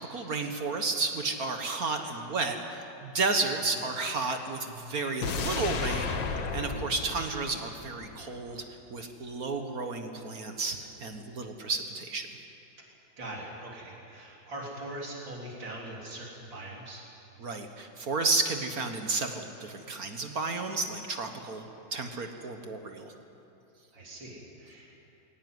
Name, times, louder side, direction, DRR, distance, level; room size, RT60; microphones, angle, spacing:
voice 1, 0.0-8.6 8.9-12.3 17.4-23.1, right 3 dB, 55° right, 5 dB, 1.7 m, -32 dB
sound 1, 5.2-8.4 8.7-8.8, left 4 dB, 80° left, 2.0 m, -33 dB
voice 2, 13.2-17.1 23.9-25.0, right 1 dB, 90° right, -3 dB, 4.5 m, -42 dB
22.0 x 18.0 x 9.5 m, 3.0 s
omnidirectional pair, 2.0 m